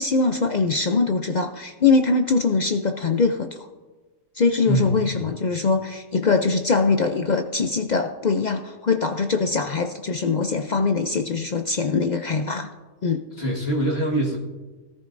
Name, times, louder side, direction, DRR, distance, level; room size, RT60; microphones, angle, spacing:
voice 1, 0.0-3.7 4.3-12.7 13.0-13.2, left 4 dB, 85° left, 6 dB, 0.4 m, -22 dB
voice 2, 4.7-5.2 13.4-14.4, right 1 dB, 45° left, -2 dB, 2.0 m, -24 dB
17.0 x 14.5 x 2.6 m, 1.2 s
omnidirectional pair, 1.5 m